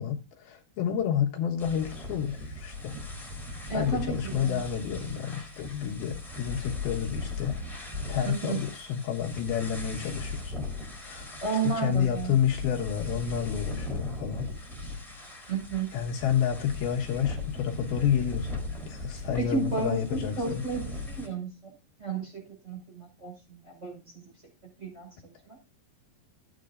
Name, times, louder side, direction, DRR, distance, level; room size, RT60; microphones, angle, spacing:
voice 1, 0.0-3.0 3.7-7.6 8.1-10.7 11.0-11.4 11.6-14.5 15.9-20.6, left 9 dB, 75° left, -1 dB, 3.2 m, -30 dB
sound 1, 1.6-21.3, left 2 dB, ahead, 2.9 m, -38 dB
voice 2, 3.7-4.6 8.2-8.6 11.4-12.3 15.5-15.9 19.4-21.7 22.0-24.3 24.8-25.6, right 5 dB, 15° right, -2 dB, 5.7 m, -33 dB
15.5 x 8.6 x 2.5 m, 0.29 s
omnidirectional pair, 4.5 m